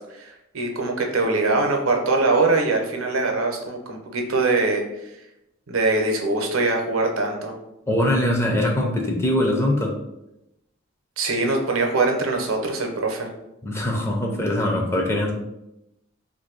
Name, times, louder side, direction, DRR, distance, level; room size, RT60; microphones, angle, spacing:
voice 1, 0.1-4.8 5.7-7.5 11.2-13.3, right 3 dB, 85° right, 2 dB, 0.7 m, -22 dB
voice 2, 7.9-9.9 13.6-15.3, left 1 dB, 15° left, 1 dB, 0.4 m, -22 dB
2.6 x 2.6 x 3.7 m, 0.89 s
head